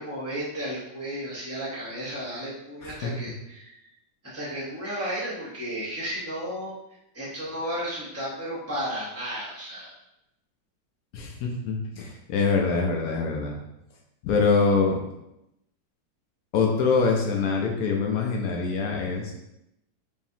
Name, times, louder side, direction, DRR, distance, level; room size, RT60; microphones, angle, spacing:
voice 1, 0.0-3.9 4.2-6.7 7.1-10.0, equal, 20° right, -8 dB, 0.4 m, -33 dB
voice 2, 2.8-3.1 11.1-13.6 14.2-15.0 16.5-19.3, left 4 dB, 75° left, 1 dB, 0.8 m, -24 dB
5.0 x 2.7 x 2.7 m, 0.85 s
omnidirectional pair, 2.1 m